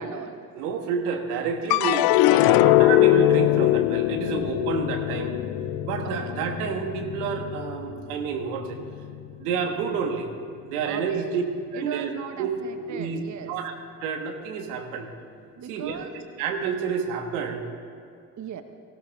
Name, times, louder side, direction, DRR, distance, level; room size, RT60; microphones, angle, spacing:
voice 1, 0.0-0.4 6.0-6.5 10.8-11.4 11.7-13.6 15.6-16.2 18.4-18.6, right 7 dB, 40° right, 9 dB, 0.9 m, -37 dB
voice 2, 0.5-5.3 5.8-8.8 9.4-10.3 10.7-11.4 11.7-12.1 12.4-12.5 12.9-13.2 13.5-13.7 14.0-15.1 15.7-16.1 16.4-17.7, right 6 dB, 75° right, 5 dB, 1.4 m, -29 dB
sound 1, 1.7-8.1 8.6-9.3, left 16 dB, 55° left, 0.5 m, -22 dB
sound 2, 4.4-9.4, equal, 20° left, 2.1 m, -43 dB
18.0 x 16.0 x 3.6 m, 2.4 s
hypercardioid pair, 50°, 45 cm